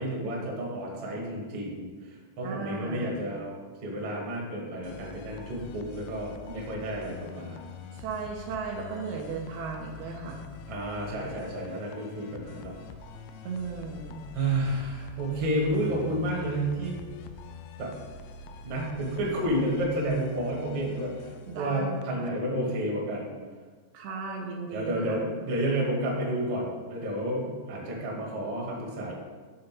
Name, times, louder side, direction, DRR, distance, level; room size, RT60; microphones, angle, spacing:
voice 1, 0.0-3.5 3.8-7.6 10.7-12.7 14.3-17.0 17.8-17.9 18.6-23.3 24.7-29.1, right 1 dB, 55° right, -2 dB, 1.5 m, -31 dB
voice 2, 2.4-3.2 8.0-10.5 13.4-14.2 21.5-22.3 23.9-25.2, right 4 dB, 85° right, 1 dB, 2.5 m, -36 dB
sound 1, 4.8-22.3, left 6 dB, 85° left, 2.2 m, -45 dB
7.7 x 3.8 x 5.7 m, 1.4 s
omnidirectional pair, 4.7 m